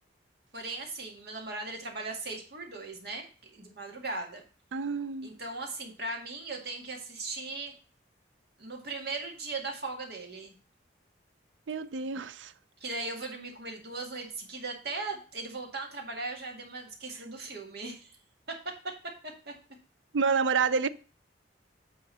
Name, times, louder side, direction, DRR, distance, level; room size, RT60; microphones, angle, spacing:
voice 1, 0.5-4.4 5.2-7.7 8.6-10.5 12.8-18.1 18.5-18.6 19.5-19.6, right 3 dB, 60° right, 2.0 m, -38 dB
voice 2, 4.7-5.4 11.7-12.5 20.1-20.9, right 5 dB, 85° right, 0.5 m, -28 dB
9.1 x 3.8 x 5.4 m
head